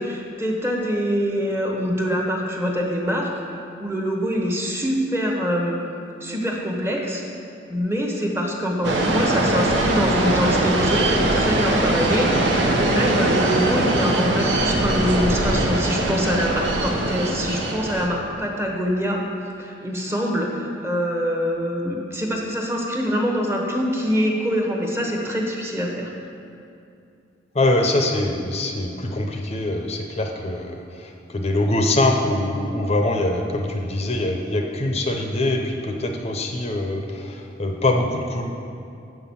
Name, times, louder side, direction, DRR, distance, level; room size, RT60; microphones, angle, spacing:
voice 1, 0.0-3.3 3.8-5.8 6.2-7.2 7.7-19.2 19.6-26.1, equal, 15° right, 0 dB, 1.0 m, -24 dB
sound 1, 8.8-18.1, right 1 dB, 70° right, 0.9 m, -21 dB
voice 2, 27.5-38.4, left 1 dB, 35° left, 2 dB, 0.6 m, -23 dB
7.7 x 5.9 x 7.1 m, 2.6 s
head